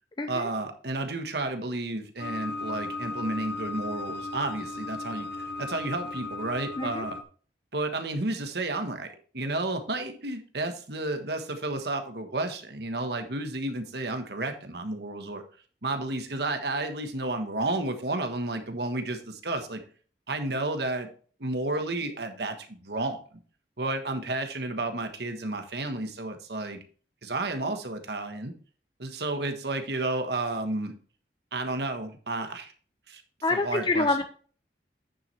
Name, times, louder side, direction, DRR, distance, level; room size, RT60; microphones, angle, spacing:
voice 1, 0.3-7.2 7.7-15.4 15.8-19.8 20.3-21.1 21.4-23.2 23.8-26.8 27.2-28.5 29.0-30.9 31.5-32.7 33.1-33.2 33.5-34.2, right 2 dB, 65° right, 6 dB, 1.3 m, -32 dB
sound 1, 2.2-7.2, left 2 dB, 60° left, 1.2 m, -36 dB
voice 2, 33.4-34.2, left 2 dB, 25° left, 8 dB, 0.5 m, -26 dB
9.4 x 7.1 x 3.3 m, 0.42 s
head